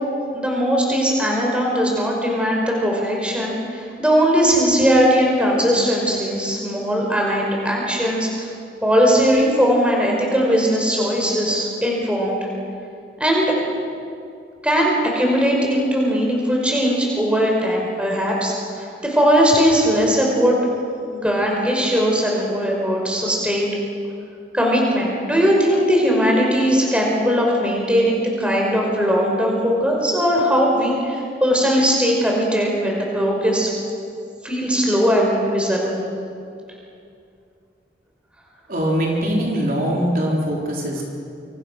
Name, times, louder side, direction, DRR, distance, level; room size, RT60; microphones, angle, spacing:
voice 1, 0.3-8.5 8.8-12.4 13.2-13.5 14.6-20.5 21.1-23.7 24.5-33.7 34.4-36.0, equal, 5° right, -2 dB, 5.3 m, -19 dB
voice 2, 38.7-41.0, equal, 50° right, -2 dB, 4.1 m, -22 dB
28.0 x 26.0 x 6.5 m, 2.5 s
head